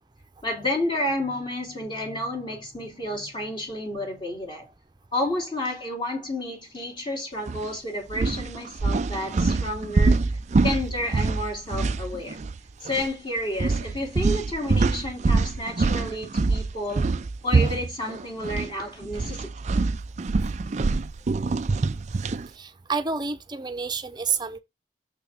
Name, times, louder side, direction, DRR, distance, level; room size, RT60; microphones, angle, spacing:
voice 1, 0.4-4.7 5.1-10.2 10.6-12.4 12.8-17.1 17.4-19.5, left 1 dB, 25° left, 2.8 m, -30 dB
sound 1, 7.5-7.7 8.1-12.6 12.9-13.1 13.6-18.7 19.0-22.5, right 3 dB, 40° right, 0.4 m, -25 dB
voice 2, 22.6-24.6, right 5 dB, 25° right, 0.8 m, -29 dB
7.0 x 6.0 x 3.6 m
head